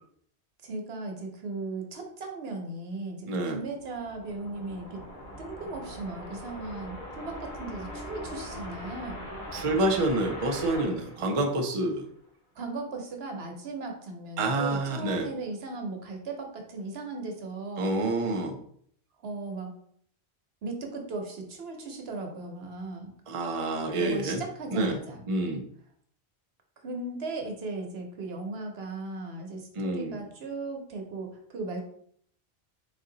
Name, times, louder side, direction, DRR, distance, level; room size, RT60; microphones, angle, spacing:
voice 1, 0.6-5.0 5.4-9.2 12.6-17.9 19.2-19.7 20.6-23.1 23.9-25.2 26.8-31.8, right 3 dB, 75° right, 2 dB, 1.0 m, -37 dB
voice 2, 3.3-3.6 9.5-12.0 14.4-15.3 17.8-18.6 23.3-24.4 24.7-25.0 25.3-25.6 29.8-30.2, right 2 dB, 40° right, 2 dB, 0.6 m, -28 dB
sound 1, 3.7-12.0, equal, 70° left, 2.0 m, -41 dB
4.0 x 2.7 x 3.8 m, 0.63 s
omnidirectional pair, 1.1 m